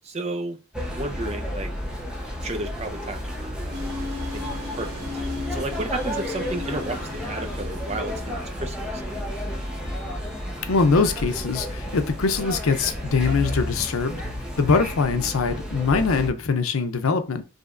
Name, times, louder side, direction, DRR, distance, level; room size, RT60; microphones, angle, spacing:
voice 1, 0.0-0.6 0.8-1.7 2.4-5.1 5.5-7.0 7.3-9.2, right 2 dB, 30° right, 0.6 m, -33 dB
sound 1, 0.7-16.3, equal, 5° right, 0.9 m, -32 dB
sound 2, 3.7-13.7, left 3 dB, 85° right, 1.8 m, -39 dB
voice 2, 10.7-14.2 14.6-17.4, left 4 dB, 75° left, 0.6 m, -22 dB
5.1 x 3.2 x 2.5 m
head